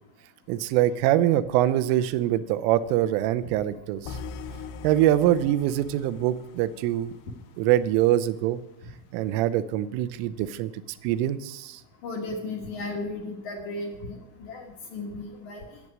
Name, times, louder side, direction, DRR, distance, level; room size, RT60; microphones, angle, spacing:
voice 1, 0.5-4.2 4.8-7.1 7.6-8.6 9.1-10.7 11.0-11.8, right 13 dB, 85° right, 14 dB, 3.2 m, -24 dB
sound 1, 4.0-8.2, left 5 dB, 80° left, 2.6 m, -42 dB
voice 2, 12.0-15.6, left 2 dB, 60° left, 2 dB, 2.0 m, -35 dB
14.0 x 7.6 x 9.6 m, 0.87 s
omnidirectional pair, 5.7 m